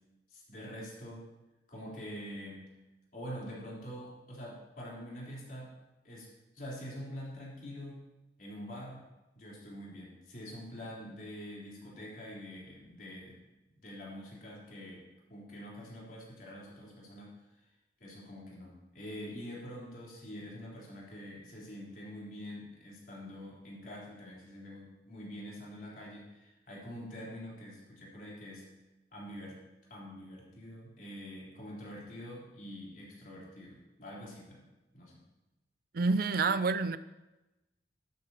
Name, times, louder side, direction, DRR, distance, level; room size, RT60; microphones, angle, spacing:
voice 1, 0.3-1.3 1.7-2.7 3.1-5.7 6.0-6.3 6.5-8.0 8.4-9.0 9.3-13.4 13.8-15.0 15.3-17.3 18.0-28.7 29.1-29.6 29.9-34.7 34.9-35.2, equal, 50° left, -5 dB, 3.9 m, -45 dB
voice 2, 35.9-37.0, right 4 dB, 55° right, 13 dB, 0.5 m, -28 dB
12.5 x 12.0 x 2.9 m, 1.0 s
head